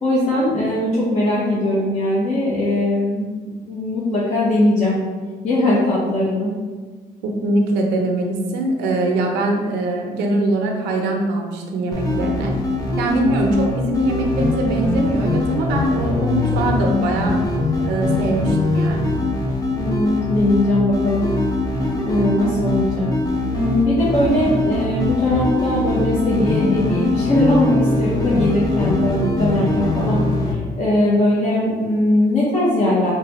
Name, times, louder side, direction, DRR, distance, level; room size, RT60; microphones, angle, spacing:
voice 1, 0.0-3.3 3.7-5.0 5.4-6.5 19.7-21.3 22.1-23.1 23.5-30.2 30.5-33.1, left 1 dB, 45° left, -7 dB, 0.9 m, -20 dB
voice 2, 7.2-12.5 13.0-17.4 17.8-19.2, right 2 dB, 90° right, 1 dB, 0.6 m, -22 dB
sound 1, 11.9-30.5, left 2 dB, 20° left, 0.7 m, -22 dB
3.3 x 2.2 x 4.1 m, 1.4 s
cardioid pair, 110°, 17 cm